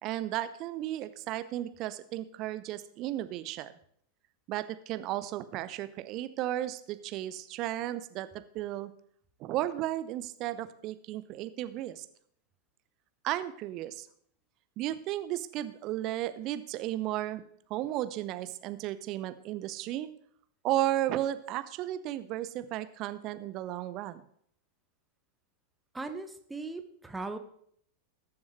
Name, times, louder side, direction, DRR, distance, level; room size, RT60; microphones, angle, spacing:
voice 1, 0.0-3.7 4.5-8.3 8.5-8.9 9.4-12.1 13.2-14.1 14.8-17.4 17.7-20.1 20.6-24.2, right 14 dB, 40° right, 12 dB, 0.8 m, -34 dB
voice 2, 25.9-27.4, right 3 dB, 10° right, 7 dB, 1.1 m, -38 dB
20.0 x 7.2 x 3.3 m, 0.65 s
figure-of-eight pair, 90°, 0 cm